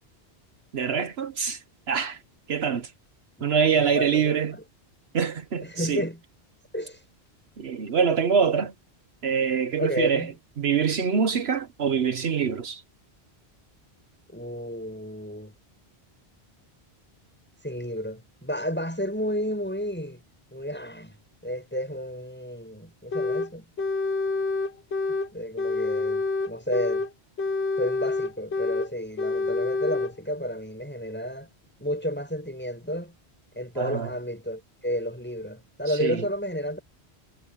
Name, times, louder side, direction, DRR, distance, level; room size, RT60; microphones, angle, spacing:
voice 1, 0.7-1.6 1.9-2.2 2.5-2.9 3.4-4.6 5.1-6.0 7.6-8.7 9.2-10.3 10.6-12.8 33.8-34.1 36.0-36.2, right 6 dB, 70° right, 1.2 m, -24 dB
voice 2, 3.7-4.6 5.6-6.2 6.7-7.0 9.8-10.4 14.3-15.5 17.6-20.2 20.5-21.2 21.4-23.7 25.3-27.1 27.8-31.5 31.8-33.2 33.5-36.8, equal, 10° left, 7.6 m, -31 dB
sound 1, 23.1-23.5 23.8-25.3 25.6-27.1 27.4-28.9 29.2-30.1, left 3 dB, 80° left, 1.4 m, -27 dB
omnidirectional pair, 1.1 m